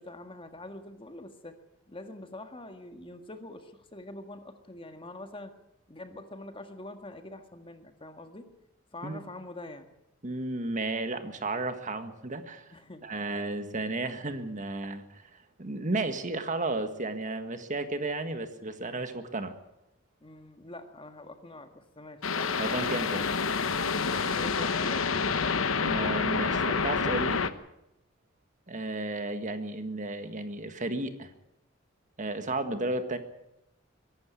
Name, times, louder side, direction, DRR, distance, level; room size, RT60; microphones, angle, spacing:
voice 1, 0.0-1.6 1.9-5.6 5.9-8.5 8.9-9.9 12.7-13.1 20.2-23.1 24.3-25.0, left 2 dB, 25° left, 7 dB, 1.7 m, -45 dB
voice 2, 10.2-12.7 13.0-19.5 22.6-23.2 25.8-27.4 28.7-31.3 32.2-33.2, right 2 dB, 40° right, 8 dB, 1.7 m, -33 dB
sound 1, 22.2-27.5, left 5 dB, 85° left, 1.1 m, -28 dB
22.5 x 12.0 x 9.7 m, 0.86 s
head